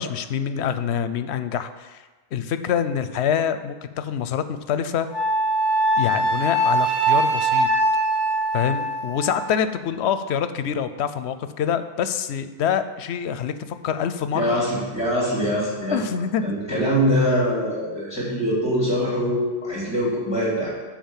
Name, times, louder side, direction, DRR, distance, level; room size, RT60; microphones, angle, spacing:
voice 1, 0.0-2.0 2.3-5.1 6.0-7.7 8.5-14.6 15.9-16.5, left 8 dB, 85° left, 11 dB, 0.9 m, -26 dB
Wind instrument woodwind instrument, 5.1-9.5, right 2 dB, 20° right, 3.1 m, -22 dB
voice 2, 14.3-16.0 16.4-20.7, equal, 25° left, -6 dB, 3.2 m, -23 dB
9.1 x 4.8 x 7.2 m, 1.2 s
omnidirectional pair, 1.1 m